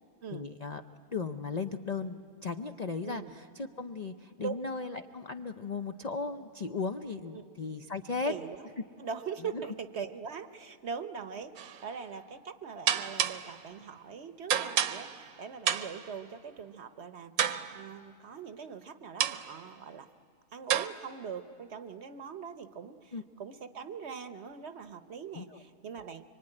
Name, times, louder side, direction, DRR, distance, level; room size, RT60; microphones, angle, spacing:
voice 1, 0.3-0.8 1.1-8.3 9.5-9.6 23.1-23.2 25.3-25.6, left 4 dB, 55° left, 7 dB, 0.4 m, -36 dB
voice 2, 8.3-8.6 9.0-17.3 17.7-20.1 20.5-26.2, right 6 dB, 50° right, 11 dB, 1.0 m, -42 dB
sound 1, 11.6-11.8 12.9-13.6 14.5-15.3 15.7-16.1 17.4-17.9 19.2-19.6 20.7-20.9, right 9 dB, 70° right, 1.3 m, -30 dB
24.5 x 24.5 x 9.9 m, 2.7 s
omnidirectional pair, 1.6 m